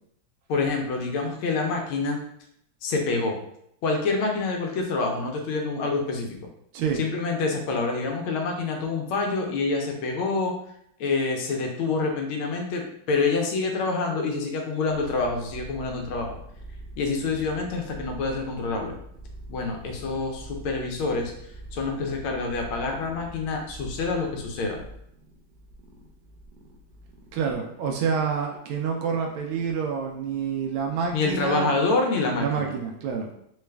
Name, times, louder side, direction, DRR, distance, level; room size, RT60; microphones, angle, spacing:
voice 1, 0.5-2.2 2.8-3.4 3.8-6.4 6.9-10.5 11.0-16.4 17.0-18.9 19.5-21.3 21.7-24.8 31.1-32.7, left 3 dB, 90° left, 2 dB, 1.6 m, -27 dB
sound 1, 14.9-27.5, equal, 70° right, 1.1 m, -44 dB
voice 2, 27.3-31.7 32.4-33.3, right 6 dB, 85° right, 2 dB, 1.4 m, -28 dB
4.0 x 2.3 x 3.2 m, 0.73 s
omnidirectional pair, 2.2 m